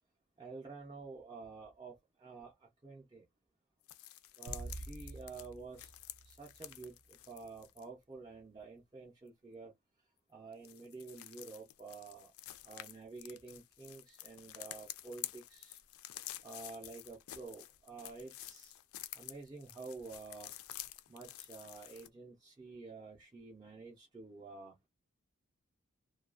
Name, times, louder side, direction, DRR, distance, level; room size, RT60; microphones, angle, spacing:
voice 1, 0.4-3.3 4.4-5.9 6.2-9.7 10.3-12.3 12.6-15.8 16.4-18.7 19.1-20.5 21.1-24.7, right 4 dB, 20° right, 0.5 m, -50 dB
sound 1, 3.9-7.8 10.5-22.1, left 14 dB, 75° left, 0.3 m, -49 dB
sound 2, 4.5-7.0, right 2 dB, 80° right, 0.5 m, -48 dB
2.3 x 2.2 x 2.4 m
head